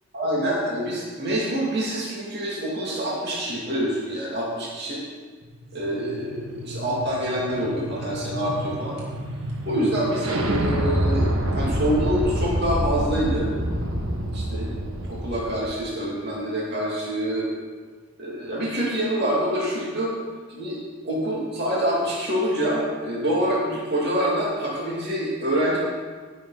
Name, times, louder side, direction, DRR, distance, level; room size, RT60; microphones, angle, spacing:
voice 1, 0.1-5.0 5.7-9.0 9.6-13.5 14.3-14.8 15.1-17.5 18.2-20.1 20.5-25.8, equal, 50° right, -5 dB, 2.6 m, -26 dB
sound 1, 5.5-15.7, right 1 dB, 80° right, 1.5 m, -27 dB
16.0 x 7.3 x 4.1 m, 1.5 s
head